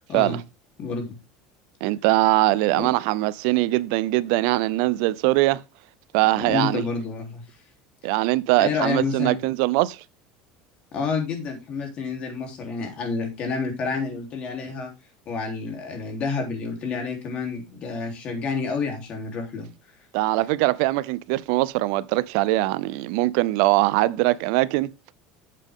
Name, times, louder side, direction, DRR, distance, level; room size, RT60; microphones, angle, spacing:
voice 1, 0.8-1.2 2.8-2.9 6.4-7.4 8.6-9.4 10.9-14.9 15.3-19.7, left 4 dB, 45° left, 3.5 m, -29 dB
voice 2, 1.8-5.6 6.1-6.8 8.0-10.0 20.1-24.9, right 19 dB, 75° right, 0.5 m, -22 dB
9.0 x 7.5 x 3.7 m
supercardioid pair, 130°, 3 cm